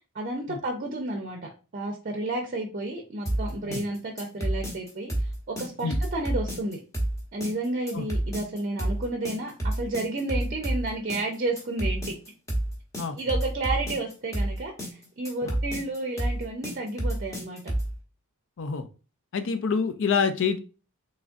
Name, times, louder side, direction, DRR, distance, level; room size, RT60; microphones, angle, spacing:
voice 1, 0.1-6.8 7.3-12.0 13.2-17.7, right 2 dB, 40° right, 2 dB, 0.5 m, -31 dB
sound 1, 3.3-18.0, right 1 dB, 15° left, 0.9 m, -29 dB
voice 2, 19.3-20.6, left 5 dB, 55° left, 10 dB, 0.5 m, -27 dB
3.7 x 3.1 x 2.5 m, 0.34 s
head